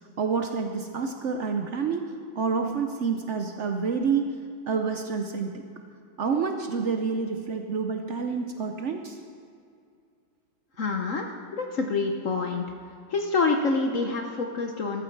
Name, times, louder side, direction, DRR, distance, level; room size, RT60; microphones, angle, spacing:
voice 1, 0.2-2.0 2.4-4.3 4.7-5.6 6.2-9.2, right 5 dB, 85° right, 4 dB, 0.6 m, -28 dB
voice 2, 10.8-11.3 11.6-12.6 13.1-15.0, left 3 dB, 55° left, 3 dB, 0.9 m, -26 dB
13.5 x 13.0 x 4.6 m, 2.3 s
omnidirectional pair, 2.2 m